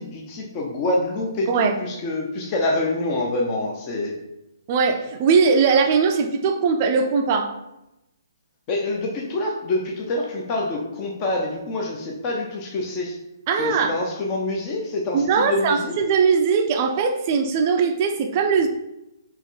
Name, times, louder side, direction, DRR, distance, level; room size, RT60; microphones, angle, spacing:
voice 1, 0.0-4.1 8.7-13.2 13.6-15.9, left 2 dB, 25° left, -1 dB, 0.6 m, -26 dB
voice 2, 1.5-1.8 4.7-7.5 13.5-13.9 15.1-18.7, right 5 dB, 35° right, 6 dB, 0.4 m, -20 dB
4.2 x 3.0 x 4.0 m, 0.91 s
hypercardioid pair, 150°, 2 cm